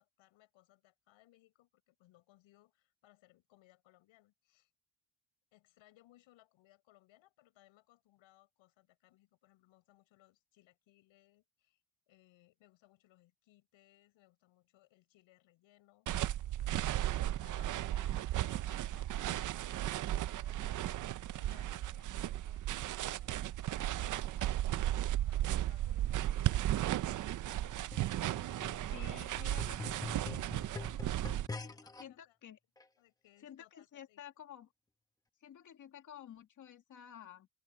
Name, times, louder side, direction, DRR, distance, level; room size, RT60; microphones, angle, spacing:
voice 1, 0.0-4.7 5.5-16.1 16.5-17.0 17.4-20.9 21.2-24.7 25.3-32.4 33.0-34.2, left 17 dB, 80° left, 7.5 m, -67 dB
sound 1, 16.1-31.5, right 13 dB, 45° right, 0.6 m, -35 dB
sound 2, 27.6-32.0 32.8-32.9, left 3 dB, 10° left, 1.1 m, -45 dB
voice 2, 28.9-30.4 32.0-32.6 33.4-34.7 35.4-37.5, left 10 dB, 40° left, 2.3 m, -52 dB
open air
cardioid pair, 160°, 46 cm